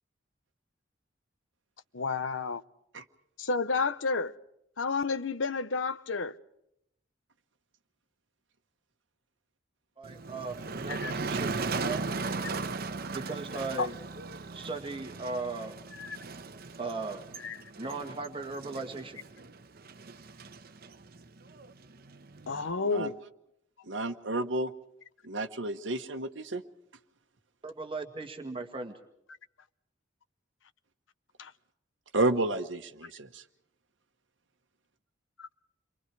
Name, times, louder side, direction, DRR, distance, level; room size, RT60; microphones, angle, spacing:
voice 1, 1.9-2.6 3.4-4.3 4.8-6.3 10.9-11.1 13.8-13.9 16.0-16.2 17.4-17.6 22.5-23.2 31.4-31.5 35.4-35.5, left 4 dB, 85° left, 0.9 m, -31 dB
voice 2, 10.0-12.0 13.1-14.0 14.5-15.8 16.8-17.3 17.8-19.2 27.6-29.0, right 3 dB, 30° right, 1.9 m, -37 dB
Motor vehicle (road), 10.0-22.7, right 4 dB, 55° right, 1.0 m, -38 dB
voice 3, 23.9-24.7 25.2-26.6 32.1-33.4, right 2 dB, 70° right, 1.2 m, -31 dB
29.5 x 24.0 x 4.7 m
head